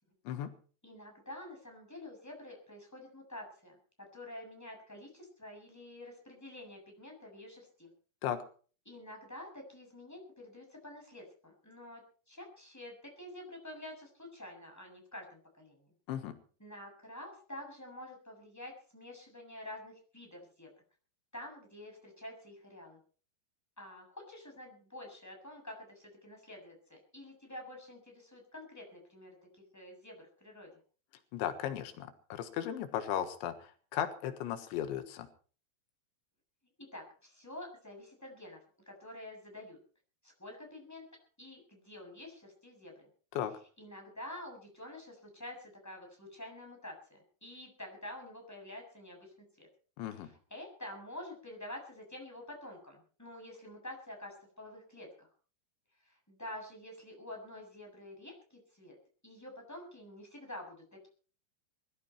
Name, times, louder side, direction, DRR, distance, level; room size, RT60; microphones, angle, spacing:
voice 1, 0.8-7.9 8.9-15.9 16.6-20.7 21.3-23.0 23.8-30.7 36.8-39.8 40.2-43.1 43.8-49.7 50.1-55.3 56.0-59.0 59.2-61.1, left 1 dB, 5° left, 2 dB, 7.0 m, -48 dB
voice 2, 31.3-35.3 43.4-43.5 50.0-50.3, left 10 dB, 90° left, 9 dB, 3.8 m, -36 dB
22.0 x 13.5 x 4.5 m, 0.42 s
omnidirectional pair, 5.1 m